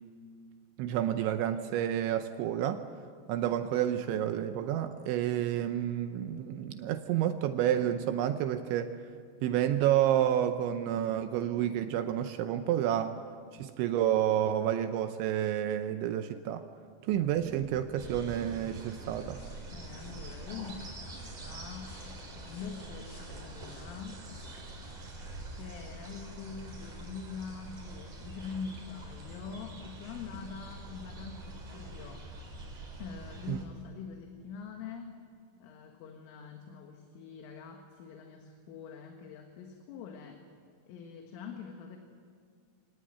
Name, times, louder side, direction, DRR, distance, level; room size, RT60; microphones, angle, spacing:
voice 1, 0.8-2.8 3.3-9.0 9.4-13.2 13.5-16.7 17.0-19.4 33.5-33.6, right 11 dB, 80° right, 8 dB, 2.9 m, -29 dB
sound 1, 17.1-22.0, right 2 dB, 55° right, 4.2 m, -51 dB
sound 2, 17.6-28.4, left 1 dB, 40° left, 8.7 m, -56 dB
sound 3, 18.0-33.7, right 2 dB, 40° right, 5.0 m, -45 dB
voice 2, 19.7-22.0 22.4-24.2 25.5-32.3 33.0-35.2 35.6-40.5 40.9-42.0, left 6 dB, 75° left, 3 dB, 4.0 m, -44 dB
26.0 x 18.5 x 9.4 m, 2.1 s
omnidirectional pair, 5.8 m